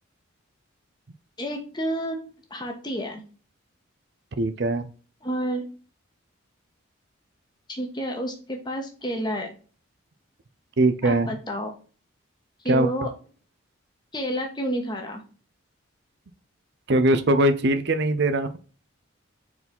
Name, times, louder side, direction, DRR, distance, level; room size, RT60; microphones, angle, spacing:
voice 1, 1.4-2.2 2.5-3.2 5.2-5.6 7.7-9.5 11.0-11.7 12.6-13.1 14.1-15.2, equal, 20° left, 3 dB, 1.3 m, -29 dB
voice 2, 4.4-4.9 10.8-11.4 12.7-12.9 16.9-18.5, right 1 dB, 55° right, 10 dB, 0.6 m, -21 dB
4.7 x 4.1 x 5.3 m, 0.39 s
head